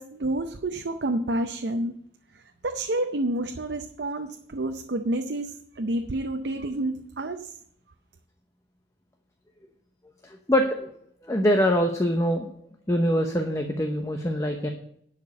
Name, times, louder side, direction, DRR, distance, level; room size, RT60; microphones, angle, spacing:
voice 1, 0.0-2.0 2.6-7.5, right 1 dB, 70° right, 6 dB, 0.6 m, -29 dB
voice 2, 10.2-10.9 11.2-12.5 12.9-14.7, equal, 20° left, 4 dB, 0.8 m, -24 dB
11.0 x 5.2 x 8.4 m, 0.70 s
head